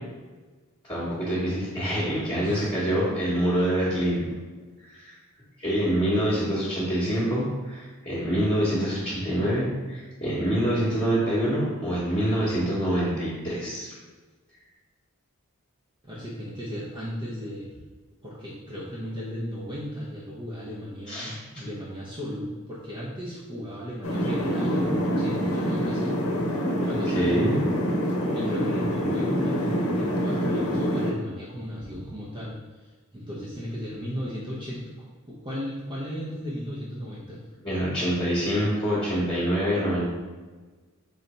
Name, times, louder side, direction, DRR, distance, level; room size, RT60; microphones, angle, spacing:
voice 1, 0.8-4.2 4.8-5.2 5.6-13.9 21.1-21.4 27.1-27.6 37.6-40.0, equal, 20° left, -10 dB, 1.1 m, -26 dB
voice 2, 2.4-2.7 16.1-17.7 18.2-26.2 26.8-27.6 28.3-32.6 32.8-37.4, equal, 25° right, -6 dB, 0.7 m, -35 dB
sound 1, 24.0-31.1, equal, 75° left, 0.8 m, -26 dB
3.9 x 3.3 x 4.2 m, 1.3 s
head